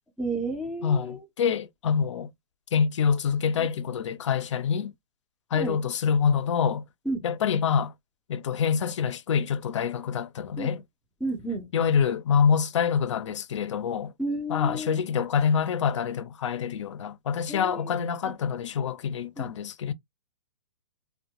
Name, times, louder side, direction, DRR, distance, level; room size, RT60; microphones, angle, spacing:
voice 1, 0.2-1.2 3.6-3.7 5.5-5.8 7.1-7.2 10.6-10.7 11.2-11.7 14.2-15.0 17.5-17.8 18.3-18.4 19.4-19.5, right 2 dB, 5° right, 0.4 m, -31 dB
voice 2, 0.8-2.3 2.7-4.9 5.5-6.8 7.2-7.9 8.3-10.8 11.7-14.1 14.5-19.9, left 7 dB, 80° left, 0.4 m, -26 dB
2.6 x 2.1 x 2.8 m
hypercardioid pair, 155°, 15 cm